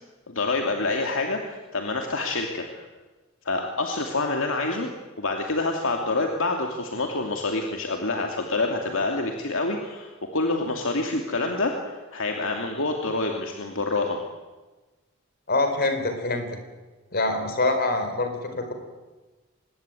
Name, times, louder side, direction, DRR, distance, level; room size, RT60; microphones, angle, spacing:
voice 1, 0.3-2.8 3.4-4.9 5.2-14.2, left 2 dB, 65° left, 2 dB, 2.7 m, -27 dB
voice 2, 15.5-16.5 17.1-18.7, left 2 dB, 45° left, 7 dB, 4.6 m, -25 dB
25.0 x 20.5 x 9.2 m, 1.2 s
head